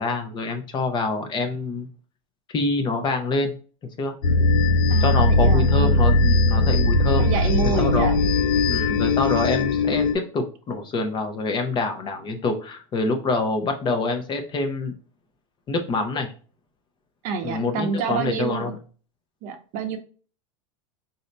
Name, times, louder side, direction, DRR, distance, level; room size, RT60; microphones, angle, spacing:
voice 1, 0.0-1.9 2.5-3.6 4.0-4.1 5.0-7.3 7.6-8.1 8.7-14.9 15.7-16.3 17.4-18.8, left 3 dB, 25° left, 6 dB, 0.7 m, -26 dB
sound 1, 4.2-10.1, left 2 dB, 90° left, 0.6 m, -19 dB
voice 2, 4.9-6.0 7.2-8.2 17.2-18.8 19.4-20.0, right 5 dB, 45° right, 6 dB, 0.8 m, -28 dB
4.0 x 2.7 x 3.2 m, 0.38 s
supercardioid pair, 125°, 17 cm